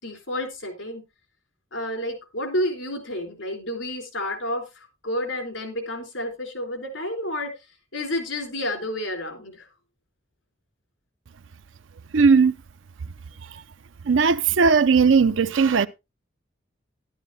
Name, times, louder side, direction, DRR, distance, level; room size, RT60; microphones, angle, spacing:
voice 1, 0.0-1.0 1.7-7.5 7.9-9.7, left 1 dB, 80° left, 3.8 m, -30 dB
voice 2, 12.1-12.5 14.1-15.9, right 5 dB, 75° right, 0.5 m, -17 dB
12.0 x 11.5 x 2.7 m
head